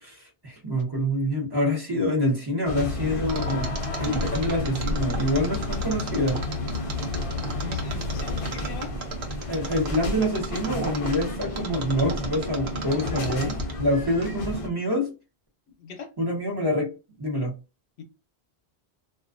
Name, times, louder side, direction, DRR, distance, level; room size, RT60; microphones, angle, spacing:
voice 1, 0.0-6.4 9.5-15.1 16.2-16.9 17.2-17.5, equal, 25° right, 0.8 m, -26 dB
sound 1, 2.7-14.7, left 2 dB, 45° left, 0.5 m, -31 dB
Mechanisms, 3.3-13.9 14.2-14.3, right 5 dB, 85° right, 0.9 m, -36 dB
voice 2, 7.6-8.9 15.8-16.1 18.0-18.1, left 5 dB, 80° left, 0.9 m, -40 dB
2.3 x 2.3 x 2.4 m
omnidirectional pair, 1.1 m